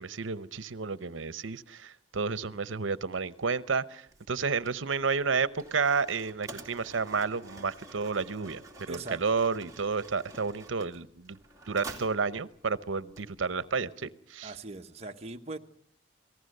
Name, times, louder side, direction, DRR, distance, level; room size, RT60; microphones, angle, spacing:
voice 1, 0.0-11.4 11.7-14.5, right 5 dB, 85° right, 16 dB, 0.8 m, -31 dB
Mechanisms, 4.1-13.7, right 2 dB, 15° right, 2.5 m, -49 dB
voice 2, 8.9-9.2 14.4-15.6, right 2 dB, 35° right, 4 dB, 1.2 m, -40 dB
28.0 x 18.5 x 6.6 m, 0.62 s
head